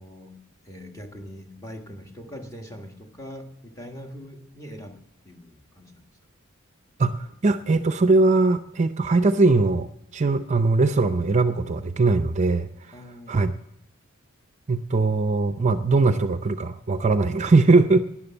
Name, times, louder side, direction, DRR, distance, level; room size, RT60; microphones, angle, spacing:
voice 1, 0.0-6.1 12.9-13.5, equal, 15° left, 4 dB, 1.5 m, -42 dB
voice 2, 7.0-9.9 10.1-12.9 13.3-13.5 14.7-18.1, right 3 dB, 35° right, 10 dB, 0.5 m, -20 dB
12.0 x 10.0 x 7.0 m, 0.81 s
head